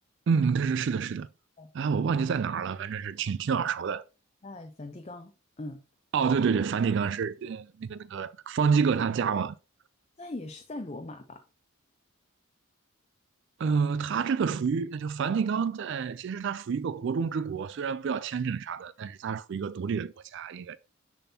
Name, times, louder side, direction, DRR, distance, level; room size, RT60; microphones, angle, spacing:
voice 1, 0.3-1.3 1.7-4.0 6.1-9.6 13.6-20.8, right 6 dB, 55° right, 0.3 m, -28 dB
voice 2, 4.4-5.8 10.2-11.4, left 2 dB, 30° left, 0.5 m, -41 dB
6.9 x 6.0 x 2.8 m
head